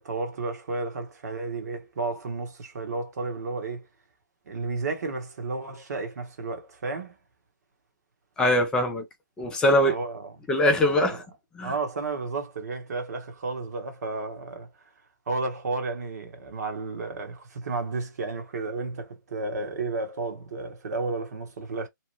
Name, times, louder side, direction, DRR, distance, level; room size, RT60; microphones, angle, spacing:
voice 1, 0.0-3.9 4.5-7.2 9.9-10.3 11.1-11.2 11.6-14.7 15.3-21.9, right 3 dB, 50° right, 1.2 m, -32 dB
voice 2, 8.4-9.1 9.4-10.0 10.5-11.2 11.5-11.7, left 1 dB, 5° left, 0.5 m, -22 dB
2.9 x 2.1 x 3.0 m
figure-of-eight pair, 145°, 11 cm